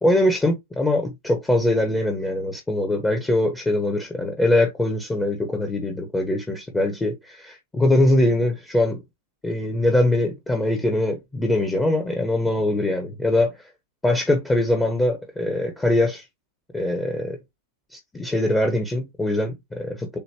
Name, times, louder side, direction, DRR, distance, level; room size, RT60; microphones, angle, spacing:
voice 1, 0.0-9.0 9.4-13.5 14.0-16.2 16.7-17.4 17.9-20.2, left 1 dB, 10° left, 1.1 m, -22 dB
6.8 x 2.5 x 3.0 m
hypercardioid pair, 110°, 0 cm